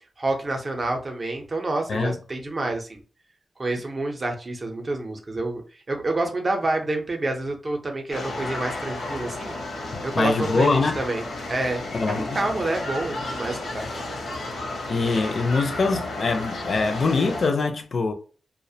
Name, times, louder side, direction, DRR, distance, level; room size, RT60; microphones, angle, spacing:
voice 1, 0.2-3.0 3.6-5.6 5.9-9.5 10.0-11.2 11.5-13.9, right 2 dB, 35° right, 0.5 m, -28 dB
sound 1, 8.1-17.5, left 2 dB, 80° left, 0.7 m, -33 dB
voice 2, 9.9-11.0 11.9-12.4 14.9-18.1, left 3 dB, 50° left, 0.4 m, -23 dB
2.4 x 2.0 x 2.6 m
wide cardioid pair, 135°, 0 cm